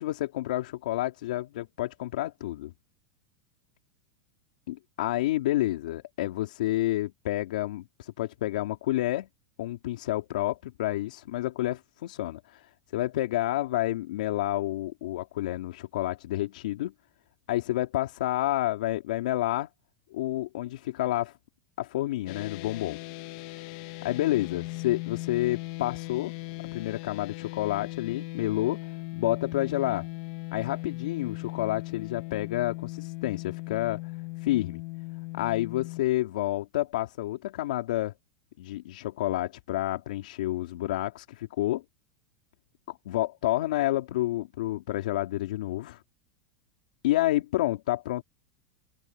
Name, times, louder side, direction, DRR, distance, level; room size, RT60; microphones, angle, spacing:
voice 1, 0.0-2.7 4.7-9.3 9.6-16.9 17.5-19.7 20.1-21.4 21.8-23.0 24.0-26.3 26.7-28.8 29.1-30.1 30.5-34.0 34.4-34.8 35.3-38.1 38.6-41.8 42.9-46.0 47.0-48.2, left 15 dB, 80° left, 3.3 m, -29 dB
sound 1, 22.3-36.0, left 22 dB, 50° left, 1.0 m, -38 dB
open air
supercardioid pair, 150°, 4 cm